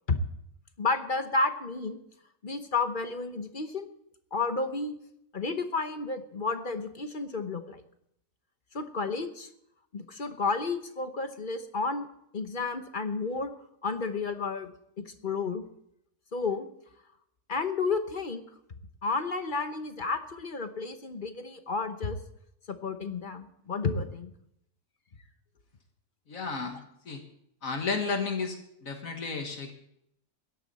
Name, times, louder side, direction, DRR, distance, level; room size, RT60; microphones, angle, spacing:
voice 1, 0.8-2.0 2.4-3.9 4.3-4.9 5.3-7.8 8.7-9.5 9.9-12.1 12.3-13.5 13.8-14.7 15.0-15.6 16.3-16.7 17.5-18.4 19.0-22.2 22.7-24.3, left 4 dB, 40° left, 8 dB, 1.0 m, -31 dB
voice 2, 26.3-26.8 27.1-27.2 27.6-29.7, left 4 dB, 65° left, 5 dB, 1.9 m, -32 dB
17.5 x 12.5 x 4.1 m, 0.75 s
omnidirectional pair, 1.6 m